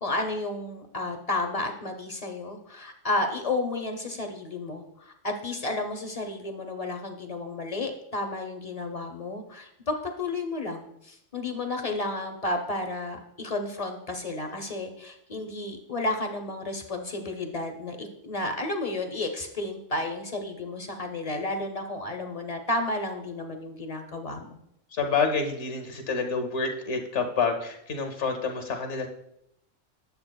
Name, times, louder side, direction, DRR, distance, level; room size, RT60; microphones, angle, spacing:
voice 1, 0.0-24.6, left 2 dB, 40° left, 4 dB, 0.6 m, -32 dB
voice 2, 24.9-29.1, left 5 dB, 65° left, 5 dB, 1.1 m, -28 dB
9.5 x 7.1 x 2.2 m, 0.77 s
omnidirectional pair, 1.4 m